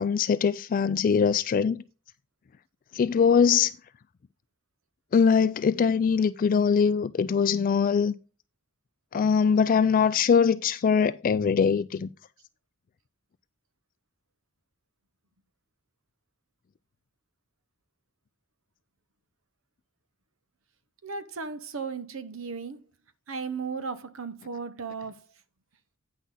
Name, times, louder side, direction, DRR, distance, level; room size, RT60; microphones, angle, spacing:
voice 1, 0.0-1.8 2.9-3.7 5.1-8.1 9.1-12.1, left 6 dB, 40° left, 0.3 m, -22 dB
voice 2, 21.0-22.8 23.3-25.3, right 5 dB, 70° right, 0.8 m, -35 dB
9.3 x 6.2 x 3.9 m
head